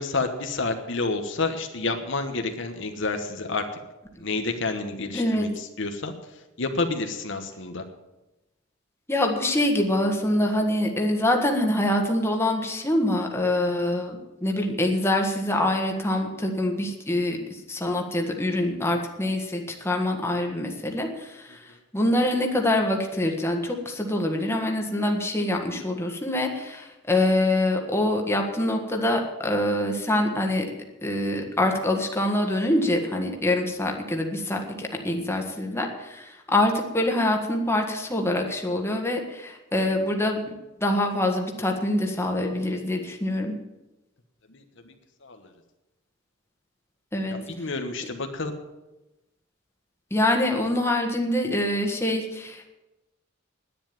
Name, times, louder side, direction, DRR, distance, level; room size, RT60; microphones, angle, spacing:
voice 1, 0.0-3.6 4.2-6.1 6.6-7.8 44.5-44.9 45.2-45.5 47.3-48.5, left 3 dB, 65° left, 6 dB, 1.3 m, -29 dB
voice 2, 5.1-5.5 9.1-30.7 31.0-40.4 40.8-43.5 47.1-47.4 50.1-52.7, left 1 dB, 15° left, 2 dB, 1.6 m, -25 dB
10.5 x 9.9 x 9.0 m, 0.99 s
head